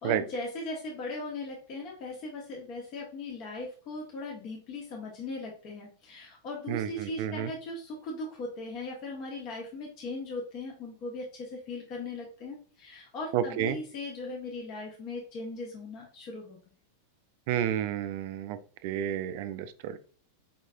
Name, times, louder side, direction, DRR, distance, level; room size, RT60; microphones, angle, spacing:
voice 1, 0.0-16.6, left 2 dB, 40° left, -1 dB, 1.0 m, -39 dB
voice 2, 6.7-7.5 13.3-13.8 17.5-20.0, right 10 dB, 50° right, 13 dB, 0.3 m, -31 dB
5.1 x 3.1 x 2.4 m, 0.43 s
figure-of-eight pair, 90°, 0 cm